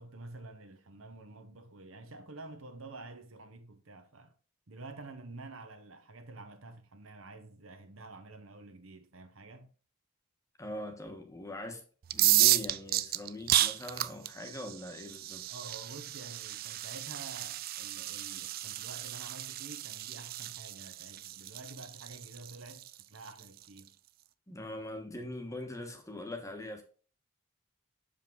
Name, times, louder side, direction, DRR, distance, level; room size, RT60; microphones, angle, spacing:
voice 1, 0.0-4.3 4.7-9.7 15.5-23.9, right 2 dB, 75° right, 1.1 m, -49 dB
voice 2, 10.6-11.8 12.1-15.5 24.5-26.8, left 1 dB, 15° left, 1.2 m, -42 dB
sound 1, 12.0-23.8, right 15 dB, 45° right, 0.3 m, -32 dB
7.0 x 5.2 x 3.7 m
head